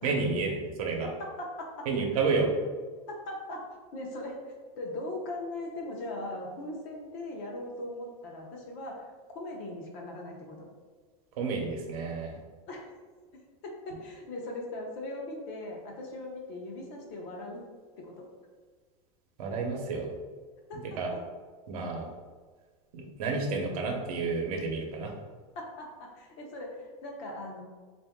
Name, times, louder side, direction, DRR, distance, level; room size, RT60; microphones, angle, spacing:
voice 1, 0.0-1.1 1.9-2.5 11.4-12.3 19.4-20.1 20.7-21.1 21.7-22.1 22.9-25.1, right 4 dB, 85° right, 1 dB, 0.8 m, -30 dB
voice 2, 1.0-1.9 3.1-3.6 3.9-4.4 4.8-10.7 12.7-12.9 13.3-17.6 18.0-18.3 20.7-21.2 25.6-27.6, left 1 dB, 40° left, 0 dB, 0.7 m, -39 dB
3.8 x 2.5 x 3.5 m, 1.4 s
supercardioid pair, 175°, 18 cm